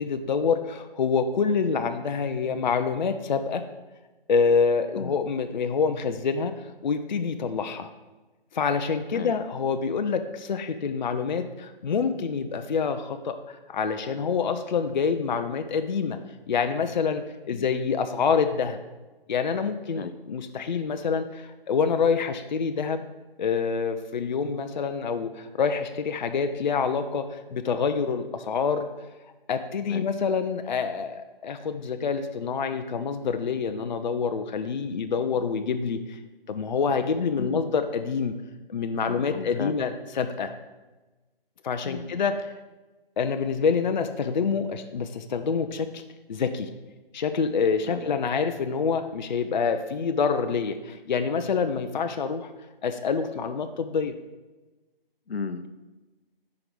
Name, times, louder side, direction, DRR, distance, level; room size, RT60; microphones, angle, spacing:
voice 1, 0.0-3.6 4.3-6.5 6.8-7.9 8.5-16.2 16.5-18.8 19.3-23.0 23.4-28.9 29.5-36.2 36.5-38.4 38.7-40.5 41.6-42.4 43.2-46.0 46.3-46.7 47.1-52.5 52.8-54.1, left 5 dB, 50° left, 8 dB, 0.5 m, -26 dB
voice 2, 39.0-39.8 41.8-42.1 47.9-48.1 55.3-55.7, left 5 dB, 85° left, 10 dB, 0.7 m, -35 dB
6.0 x 4.8 x 5.1 m, 1.2 s
figure-of-eight pair, 155°, 29 cm